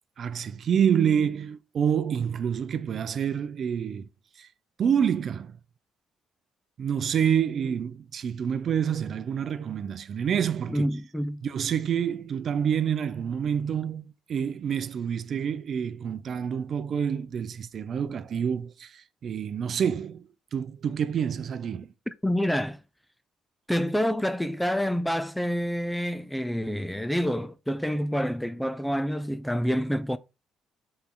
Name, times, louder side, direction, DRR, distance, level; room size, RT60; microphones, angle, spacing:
voice 1, 0.2-4.1 4.4-4.5 4.8-5.6 6.8-10.9 11.4-20.2 20.5-21.9, right 8 dB, 50° right, 0.6 m, -27 dB
voice 2, 10.7-11.4 22.1-22.8 23.7-30.2, equal, 5° left, 0.4 m, -27 dB
6.0 x 4.4 x 3.9 m
cardioid pair, 115°, 0 cm